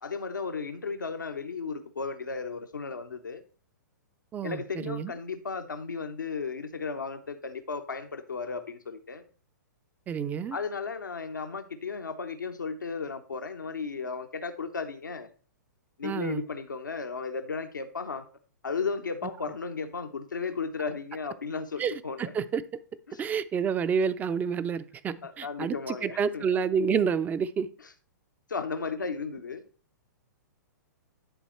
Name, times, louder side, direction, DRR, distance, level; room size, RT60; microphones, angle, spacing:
voice 1, 0.0-3.4 4.4-9.2 10.5-15.3 16.0-18.2 18.6-22.3 23.1-23.2 25.2-26.5 27.8-27.9 28.5-29.6, left 5 dB, 90° left, 7 dB, 0.8 m, -35 dB
voice 2, 4.3-5.1 10.1-10.6 16.0-16.4 21.8-22.6 23.2-27.7, right 6 dB, 15° right, 15 dB, 0.4 m, -29 dB
10.5 x 4.1 x 4.4 m, 0.39 s
hypercardioid pair, 115°, 10 cm